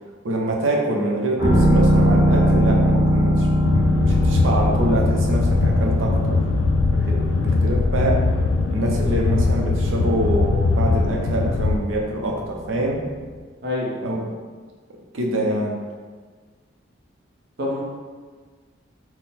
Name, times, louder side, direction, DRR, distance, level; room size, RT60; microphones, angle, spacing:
voice 1, 0.2-3.5 3.7-6.4 6.9-8.2 8.7-13.0 14.0-14.3 15.1-15.8, right 1 dB, 85° right, 0 dB, 0.6 m, -25 dB
sound 1, 1.4-13.0 13.3-13.4, equal, 20° right, 1.2 m, -22 dB
sound 2, 3.6-11.8, left 3 dB, 85° left, 0.3 m, -21 dB
voice 2, 13.6-14.0 17.6-17.8, left 1 dB, 60° right, -4 dB, 0.9 m, -26 dB
3.9 x 2.1 x 4.1 m, 1.5 s
head